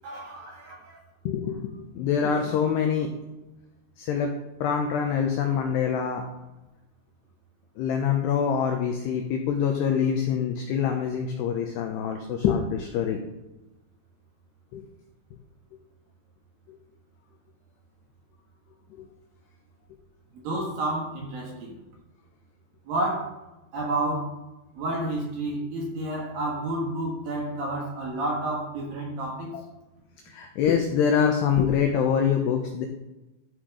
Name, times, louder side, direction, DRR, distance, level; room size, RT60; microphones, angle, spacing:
voice 1, 0.0-1.0 20.3-21.8 22.8-23.3 23.7-24.3 24.8-29.5, right 1 dB, 60° right, -2 dB, 2.9 m, -30 dB
voice 2, 1.3-3.1 4.0-4.3 4.6-6.2 7.8-13.2 14.7-14.8 18.9-19.1 29.5-29.6 30.3-32.9, left 7 dB, 85° left, 3 dB, 2.4 m, -25 dB
13.0 x 6.2 x 4.9 m, 1.0 s
omnidirectional pair, 5.9 m